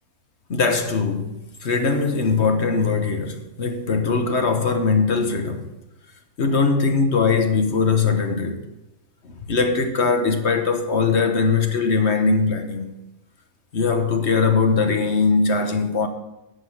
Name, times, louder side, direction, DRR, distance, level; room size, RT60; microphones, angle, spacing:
voice 1, 0.5-5.7 6.4-8.6 9.2-12.9 13.7-16.1, left 4 dB, 50° left, 1.3 m, -21 dB
11.0 x 6.0 x 7.8 m
omnidirectional pair, 1.5 m